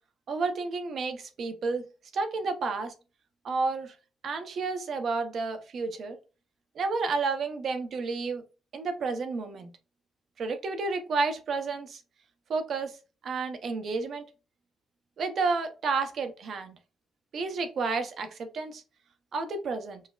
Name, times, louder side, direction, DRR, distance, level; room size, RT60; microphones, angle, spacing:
voice 1, 0.3-1.8 2.1-2.9 3.4-3.9 4.2-6.2 6.7-8.4 8.7-9.7 10.4-12.0 12.5-13.0 13.2-14.2 15.2-16.8 17.3-18.8 19.3-20.0, right 4 dB, 60° right, 0.7 m, -31 dB
5.5 x 2.0 x 2.4 m
cardioid pair, 90°, 0 cm